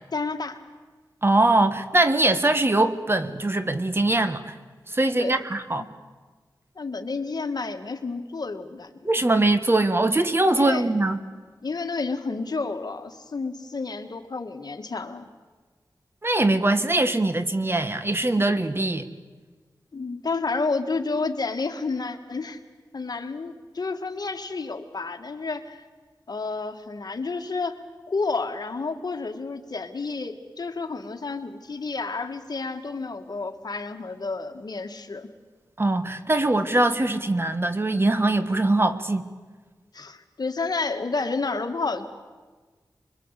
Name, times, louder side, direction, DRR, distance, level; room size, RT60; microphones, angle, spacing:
voice 1, 0.1-0.6 5.2-5.4 5.8-5.9 6.8-8.9 10.5-10.9 11.6-15.3 19.9-22.6 22.9-25.9 26.3-27.8 28.1-35.3 39.9-42.1, left 4 dB, 60° left, 6 dB, 1.8 m, -30 dB
voice 2, 1.2-4.5 4.9-5.8 9.0-11.2 16.2-19.1 35.8-39.3, right 2 dB, 30° right, 10 dB, 1.5 m, -22 dB
25.0 x 23.0 x 8.3 m, 1.4 s
wide cardioid pair, 60°, 8 cm